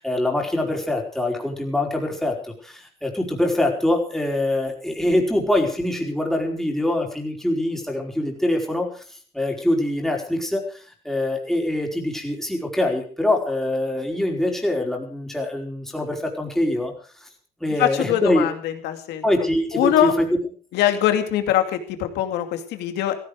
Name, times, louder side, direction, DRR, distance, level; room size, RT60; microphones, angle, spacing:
voice 1, 0.0-16.9 17.2-17.3 17.6-18.5 19.2-20.2, left 1 dB, ahead, 0 dB, 4.6 m, -24 dB
voice 2, 17.8-19.2 19.7-20.1 20.7-23.2, left 12 dB, 85° left, 7 dB, 2.6 m, -22 dB
15.5 x 15.5 x 4.9 m, 0.42 s
cardioid pair, 110°, 17 cm